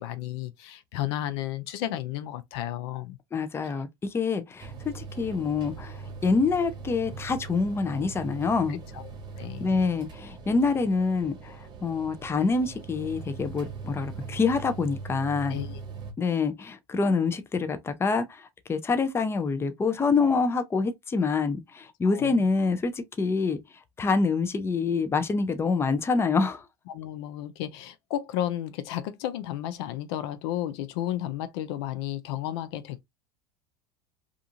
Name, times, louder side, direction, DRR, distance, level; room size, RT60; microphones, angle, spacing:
voice 1, 0.0-3.2 9.4-9.9 15.5-15.8 22.1-22.3 26.9-33.0, left 12 dB, 75° left, 0.5 m, -33 dB
voice 2, 3.3-8.8 9.6-15.6 16.2-23.6 24.0-26.7, left 4 dB, 20° left, 0.5 m, -26 dB
sound 1, 4.6-16.1, right 5 dB, 35° right, 1.0 m, -41 dB
2.5 x 2.4 x 2.7 m
supercardioid pair, 105°, 14 cm